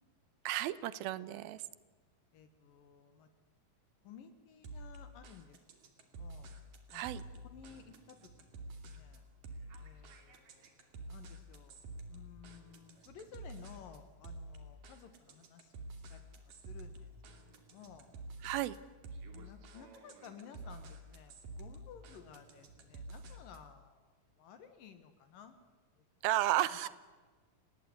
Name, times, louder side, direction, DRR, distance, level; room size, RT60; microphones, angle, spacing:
voice 1, 0.5-1.6 6.9-7.2 18.4-18.8 26.2-26.9, right 14 dB, 90° right, 17 dB, 2.8 m, -33 dB
voice 2, 2.3-3.3 4.0-5.6 5.8-6.5 6.9-7.2 7.5-9.2 9.8-11.8 12.1-15.7 16.1-16.2 16.6-17.1 17.7-18.1 19.3-25.6 26.0-26.1 26.7-26.9, left 7 dB, 70° left, 9 dB, 3.1 m, -55 dB
sound 1, 4.6-23.7, right 2 dB, 65° right, 4.2 m, -50 dB
29.0 x 19.5 x 9.6 m, 1.4 s
omnidirectional pair, 4.2 m